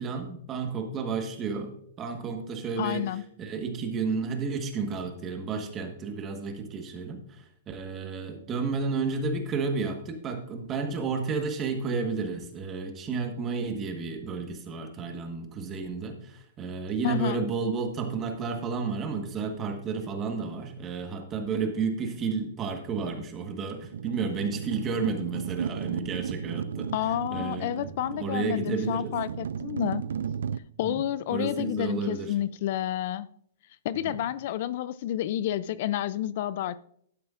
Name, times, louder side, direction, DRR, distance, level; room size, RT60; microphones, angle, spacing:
voice 1, 0.0-26.9 27.3-27.9 28.1-29.1 30.8-31.0 31.3-32.3 34.0-34.2, right 4 dB, 20° right, 5 dB, 1.3 m, -32 dB
voice 2, 2.8-3.2 17.0-17.5 26.9-30.0 30.8-33.3 33.8-36.8, left 12 dB, 50° left, 18 dB, 0.3 m, -30 dB
sound 1, 23.9-30.6, right 7 dB, 85° right, 0.3 m, -35 dB
12.0 x 9.3 x 2.5 m, 0.67 s
hypercardioid pair, 155°, 0 cm